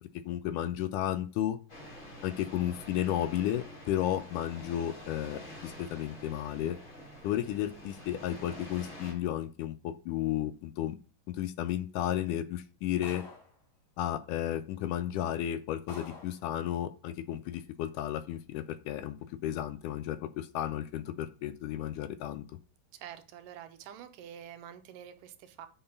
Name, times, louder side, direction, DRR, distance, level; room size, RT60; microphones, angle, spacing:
voice 1, 0.3-1.6 2.2-6.8 7.2-11.0 11.4-13.2 14.0-19.2 19.4-22.4, left 12 dB, 80° left, 12 dB, 2.1 m, -33 dB
sound 1, 1.7-9.1, equal, 25° left, 4.3 m, -47 dB
sound 2, 13.0-13.6 14.6-14.7 15.3-15.4 15.9-16.4, left 3 dB, 45° left, 3.5 m, -47 dB
voice 2, 22.9-25.7, right 10 dB, 80° right, 8 dB, 2.4 m, -47 dB
8.0 x 5.9 x 5.3 m, 0.38 s
omnidirectional pair, 3.9 m